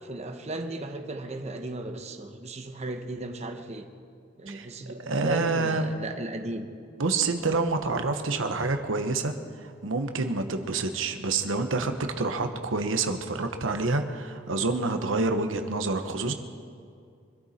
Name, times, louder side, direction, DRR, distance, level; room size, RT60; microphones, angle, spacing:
voice 1, 0.0-3.9 4.4-6.7, right 2 dB, 35° right, 5 dB, 1.0 m, -36 dB
voice 2, 5.1-5.9 7.0-9.3 9.6-16.3, right 3 dB, 90° right, 6 dB, 1.1 m, -27 dB
25.0 x 13.0 x 4.3 m, 2.3 s
head